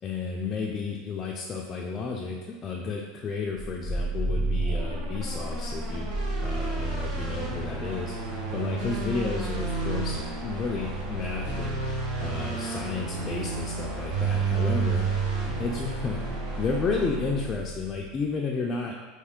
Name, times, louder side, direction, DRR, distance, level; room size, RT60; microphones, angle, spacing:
voice 1, 0.0-6.1 6.4-8.2 8.5-11.8 12.2-15.1 15.6-16.2 16.6-19.0, left 4 dB, 30° left, -1 dB, 0.3 m, -32 dB
sound 1, 3.5-18.1, right 3 dB, 75° right, 1.0 m, -30 dB
3.2 x 2.8 x 3.6 m, 1.3 s
supercardioid pair, 130°, 0 cm